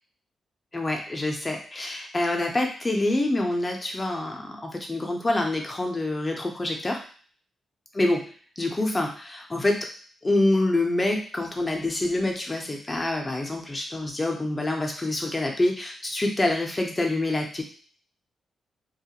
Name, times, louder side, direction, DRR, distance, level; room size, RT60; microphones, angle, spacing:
voice 1, 0.7-7.0 7.9-9.9 10.2-17.6, left 2 dB, 20° left, 1 dB, 0.6 m, -26 dB
2.3 x 2.1 x 2.8 m, 0.43 s
cardioid pair, 75°, 0 cm